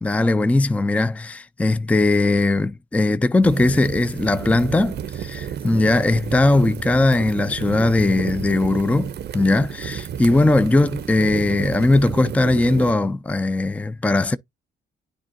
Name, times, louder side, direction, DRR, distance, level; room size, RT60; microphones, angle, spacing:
voice 1, 0.0-14.4, left 2 dB, 5° left, 0.4 m, -19 dB
sound 1, 3.4-12.9, right 9 dB, 55° right, 0.6 m, -32 dB
10.0 x 3.7 x 2.5 m
cardioid pair, 90°, 20 cm